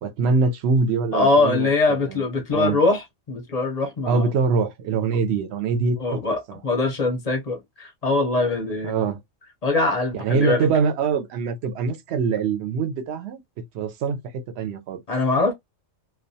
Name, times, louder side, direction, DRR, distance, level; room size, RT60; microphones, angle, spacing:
voice 1, 0.0-2.2 2.5-2.8 4.1-6.2 6.5-6.6 8.8-9.2 10.1-13.4 13.7-14.2 14.6-15.0, right 5 dB, 65° right, 0.8 m, -23 dB
voice 2, 1.1-4.3 6.0-9.0 9.6-10.7 15.1-15.5, left 3 dB, 45° left, 0.5 m, -22 dB
2.3 x 2.2 x 2.6 m
omnidirectional pair, 1.3 m